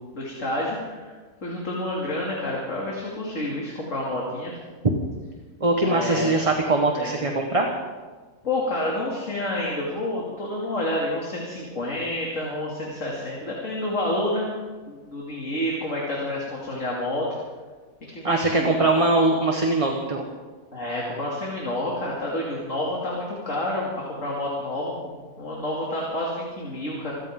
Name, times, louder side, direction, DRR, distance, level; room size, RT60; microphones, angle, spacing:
voice 1, 0.1-1.1 1.4-4.5 5.8-6.3 7.0-7.3 8.4-14.5 14.9-17.3 18.1-18.9 20.7-24.9 25.4-27.1, left 1 dB, 55° left, -4 dB, 3.1 m, -29 dB
voice 2, 5.6-7.7 18.2-20.3, right 2 dB, 25° right, 2 dB, 1.3 m, -22 dB
26.0 x 14.5 x 3.8 m, 1.4 s
omnidirectional pair, 1.6 m